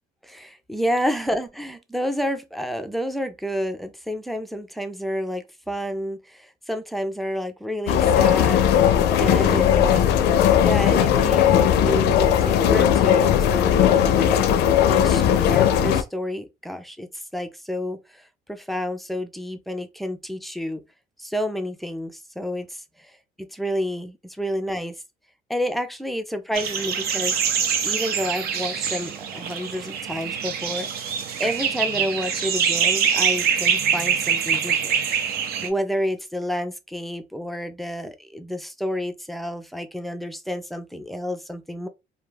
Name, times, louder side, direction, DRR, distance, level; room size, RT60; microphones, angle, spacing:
voice 1, 0.2-8.7 9.2-10.1 10.5-14.5 14.9-20.8 21.2-22.8 23.5-25.0 25.5-27.4 27.8-31.0 31.4-35.2 35.6-41.9, equal, ahead, 0.3 m, -30 dB
sound 1, 7.9-16.0, left 9 dB, 80° left, 0.4 m, -18 dB
sound 2, 26.5-35.7, right 7 dB, 70° right, 0.6 m, -24 dB
2.2 x 2.2 x 3.1 m
cardioid pair, 110°, 17 cm